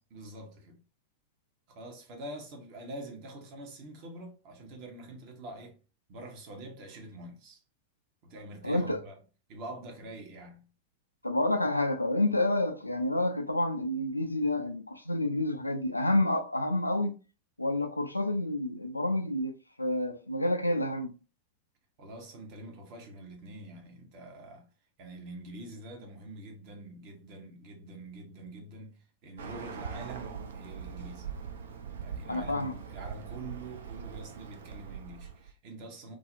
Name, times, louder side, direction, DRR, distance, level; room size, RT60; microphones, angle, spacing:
voice 1, 0.1-0.8 1.7-5.8 6.1-7.6 8.2-9.2 9.5-10.7 22.0-24.7 25.0-31.3 32.0-36.2, right 1 dB, 45° right, 0.8 m, -45 dB
voice 2, 8.6-9.0 11.2-17.2 17.6-21.1 32.3-32.7, left 1 dB, 85° left, 0.3 m, -29 dB
Bird, 29.4-35.5, right 7 dB, 65° right, 0.3 m, -42 dB
2.5 x 2.0 x 2.5 m
figure-of-eight pair, 90°, 0 cm